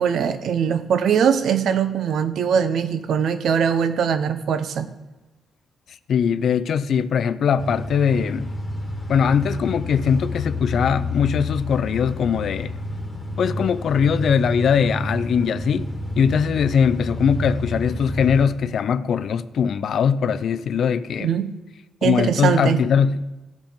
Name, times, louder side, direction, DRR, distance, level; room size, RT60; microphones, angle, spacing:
voice 1, 0.0-4.9 21.2-21.6 22.0-22.8, right 7 dB, 70° right, 0.7 m, -21 dB
voice 2, 6.1-8.5 9.1-12.7 13.4-21.3 22.0-23.2, left 7 dB, 60° left, 0.4 m, -21 dB
sound 1, 7.6-18.4, left 2 dB, 15° left, 1.6 m, -30 dB
15.5 x 5.2 x 5.1 m
cardioid pair, 135°, 0 cm